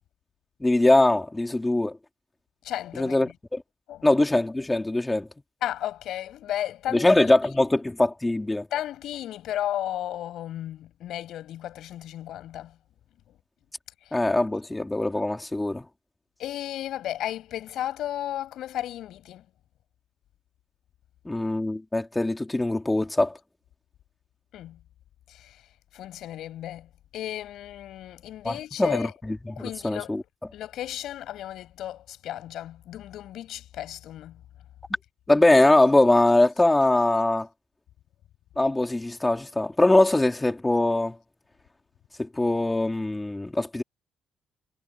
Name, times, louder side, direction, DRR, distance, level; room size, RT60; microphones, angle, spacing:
voice 1, 0.6-1.9 3.0-3.3 4.0-5.3 6.9-8.7 14.1-15.8 21.2-23.3 28.4-30.2 35.3-37.5 38.6-41.1 42.2-43.8, left 2 dB, 15° left, 3.1 m, -22 dB
voice 2, 2.6-3.3 3.9-4.1 5.6-7.3 8.7-12.8 13.3-13.4 14.0-14.2 16.4-19.4 24.5-24.8 25.3-25.6 25.9-29.1 29.6-30.2 30.5-34.4, left 12 dB, 80° left, 6.8 m, -34 dB
cardioid pair, 90°, 0 cm